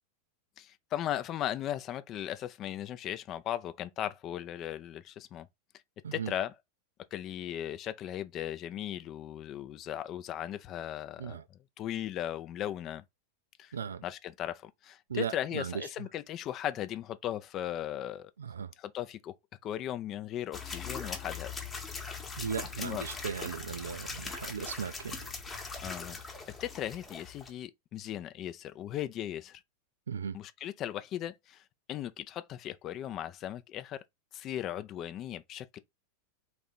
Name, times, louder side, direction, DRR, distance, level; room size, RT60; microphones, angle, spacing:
voice 1, 0.6-5.5 6.1-6.5 7.1-13.0 13.6-13.8 14.0-18.3 18.8-19.3 19.6-21.5 22.8-23.1 25.8-26.2 26.6-29.6 30.3-31.6 31.9-34.0 34.3-35.8, left 11 dB, 35° left, 0.4 m, -37 dB
voice 2, 13.7-14.0 15.1-15.9 18.4-18.7 22.4-25.3 30.1-30.4, right 7 dB, 70° right, 0.3 m, -37 dB
sound 1, 20.5-27.5, left 4 dB, 15° left, 1.0 m, -41 dB
3.6 x 2.6 x 4.0 m
figure-of-eight pair, 90°, 0 cm